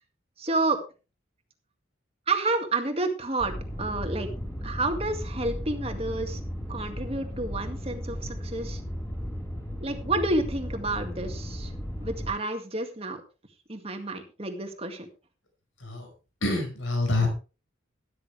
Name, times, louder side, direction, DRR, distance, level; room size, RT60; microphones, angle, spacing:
voice 1, 0.4-0.8 2.3-4.3 4.6-6.4 6.7-8.8 9.8-11.7 12.0-13.2 13.7-15.1, right 2 dB, 30° right, 5 dB, 2.1 m, -30 dB
sound 1, 3.4-12.3, equal, 10° left, 5.0 m, -35 dB
voice 2, 16.4-17.3, left 2 dB, 85° left, 3 dB, 5.1 m, -26 dB
13.0 x 13.0 x 3.4 m, 0.33 s
head